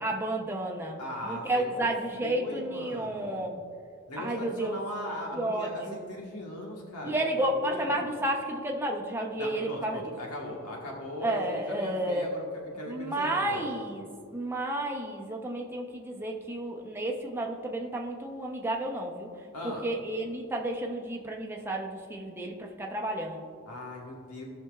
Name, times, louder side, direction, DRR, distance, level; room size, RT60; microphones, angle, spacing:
voice 1, 0.0-3.6 4.2-4.8 5.3-6.0 7.0-10.0 11.2-12.3 12.9-14.1 14.3-19.3 19.6-23.5, right 1 dB, 10° right, -1 dB, 0.7 m, -31 dB
voice 2, 1.0-1.9 2.2-3.4 4.1-8.1 9.4-13.7 19.5-19.9 23.6-24.4, left 1 dB, 90° left, -1 dB, 1.4 m, -39 dB
17.0 x 5.7 x 2.4 m, 2.2 s
head